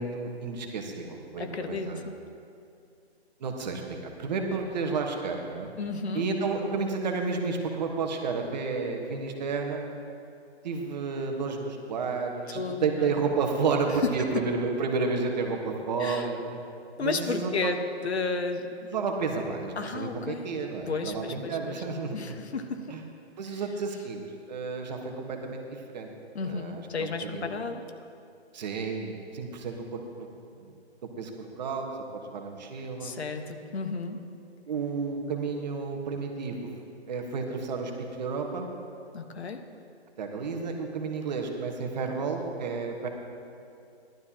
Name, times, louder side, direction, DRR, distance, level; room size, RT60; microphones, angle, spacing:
voice 1, 0.0-2.0 3.4-5.7 6.1-9.9 10.6-16.4 17.0-17.7 18.9-22.4 22.9-23.0 23.4-26.1 26.4-27.6 28.5-30.0 30.6-30.8 31.2-31.8 32.1-33.2 34.7-36.7 37.1-38.7 40.2-43.1, right 4 dB, 40° right, 3 dB, 1.4 m, -31 dB
voice 2, 1.4-2.2 5.8-6.3 12.5-13.1 14.0-14.3 16.0-16.3 17.0-18.7 19.8-20.5 20.9-21.8 22.1-23.0 26.3-27.8 33.0-34.2 39.1-39.6, left 4 dB, 70° left, 6 dB, 1.3 m, -33 dB
17.0 x 12.0 x 2.9 m, 2.5 s
hypercardioid pair, 150°, 34 cm